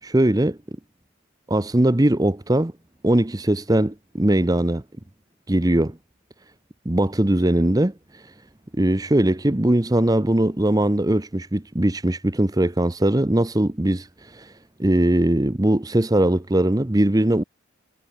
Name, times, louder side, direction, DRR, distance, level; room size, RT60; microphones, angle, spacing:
voice 1, 0.0-0.6 1.5-2.7 3.0-4.8 5.5-6.0 6.8-8.3 8.7-14.5 14.8-17.4, right 1 dB, 15° right, 0.7 m, -20 dB
head